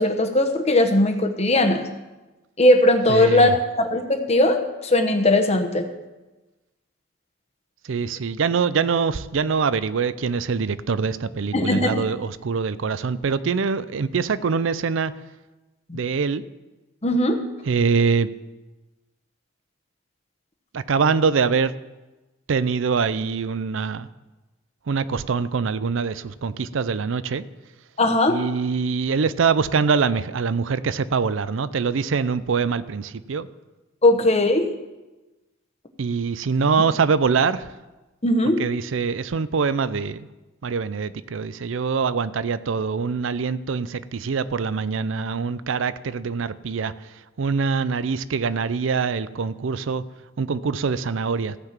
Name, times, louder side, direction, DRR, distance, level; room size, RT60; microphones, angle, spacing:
voice 1, 0.0-1.9 2.6-3.5 3.8-5.9 11.5-12.0 15.9-16.0 17.0-17.4 28.0-28.4 34.0-34.7 38.2-38.6, left 1 dB, 30° left, 6 dB, 1.0 m, -19 dB
voice 2, 3.1-3.6 7.8-15.1 15.9-16.4 17.7-18.3 20.7-21.7 22.5-24.1 24.9-27.4 28.3-33.5 36.0-37.7 38.6-40.3 40.6-50.0 50.4-51.6, right 5 dB, 65° right, 16 dB, 0.5 m, -24 dB
15.0 x 5.9 x 7.3 m, 1.1 s
head